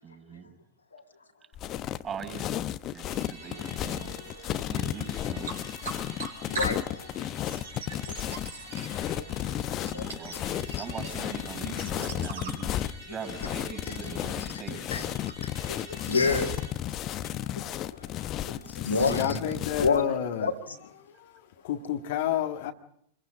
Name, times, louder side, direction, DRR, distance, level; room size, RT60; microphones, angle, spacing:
voice 1, 0.0-0.5 2.0-4.1 4.7-5.6 9.6-12.7 13.1-15.2, right 7 dB, 25° right, 6 dB, 6.1 m, -41 dB
sound 1, 1.5-20.0, left 12 dB, 35° left, 1.0 m, -33 dB
sound 2, 3.1-16.7, equal, 85° right, 6.6 m, -48 dB
sound 3, 3.7-12.5, right 5 dB, 65° right, 4.9 m, -43 dB
voice 2, 6.5-7.1 8.1-8.2 9.9-10.0 10.8-10.9 13.9-14.0 14.9-15.1 15.4-16.6 17.2-19.4 19.8-20.8, left 4 dB, 80° left, 3 dB, 2.9 m, -30 dB
voice 3, 19.0-20.5 21.2-21.3 21.6-22.7, left 10 dB, 55° left, 4 dB, 1.7 m, -29 dB
28.0 x 22.5 x 5.1 m, 0.71 s
figure-of-eight pair, 90°, 0 cm